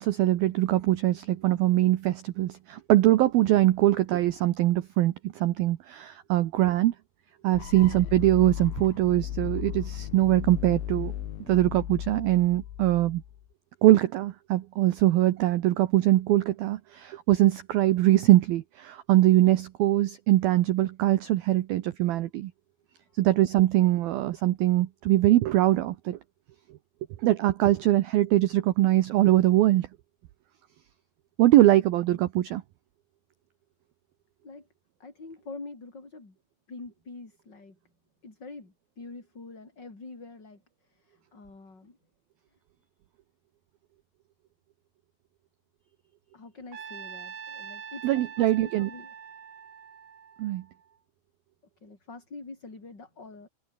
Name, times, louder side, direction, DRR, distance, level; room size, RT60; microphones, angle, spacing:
voice 1, 0.0-6.9 7.4-11.1 11.5-13.2 13.8-22.5 23.2-26.2 27.2-29.9 31.4-32.6 48.0-48.9 50.4-50.6, right 15 dB, 80° right, 2.2 m, -22 dB
sound 1, 7.5-13.5, left 11 dB, 85° left, 4.6 m, -36 dB
voice 2, 35.0-36.4 36.7-37.8 38.2-40.6 40.9-42.0 46.3-49.1 51.8-53.5, left 3 dB, 20° left, 5.1 m, -45 dB
Trumpet, 46.7-50.9, right 7 dB, 45° right, 3.7 m, -44 dB
omnidirectional pair, 5.5 m